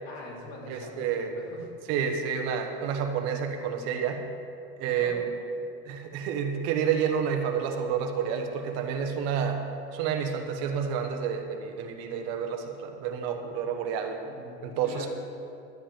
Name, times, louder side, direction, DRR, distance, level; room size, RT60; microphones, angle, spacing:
voice 1, 0.0-1.6 4.8-5.2 14.2-15.1, left 2 dB, 70° left, -4 dB, 3.3 m, -44 dB
voice 2, 0.7-1.3 1.9-4.2 4.8-5.2 5.8-14.2 14.6-15.2, right 7 dB, 55° right, 5 dB, 1.1 m, -29 dB
12.0 x 5.4 x 8.6 m, 2.6 s
cardioid pair, 160°, 31 cm